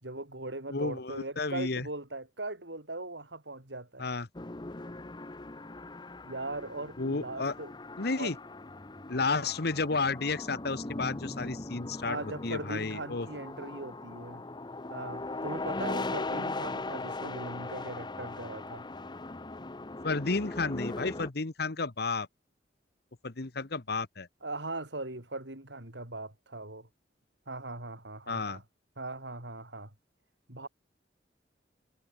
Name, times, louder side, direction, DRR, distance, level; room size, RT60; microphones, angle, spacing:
voice 1, 0.0-4.1 6.2-7.7 8.2-8.3 12.1-14.4 14.9-18.8 24.4-26.9 27.5-28.6 29.0-29.9 30.5-30.7, right 2 dB, 85° right, 6.0 m, -40 dB
voice 2, 0.7-1.9 4.0-4.3 7.0-7.5 8.0-8.4 9.1-12.2 12.4-13.3 20.0-22.3 23.2-24.3 28.3-28.6, left 3 dB, 65° left, 1.3 m, -32 dB
sound 1, 4.3-21.3, left 2 dB, 25° left, 1.0 m, -39 dB
head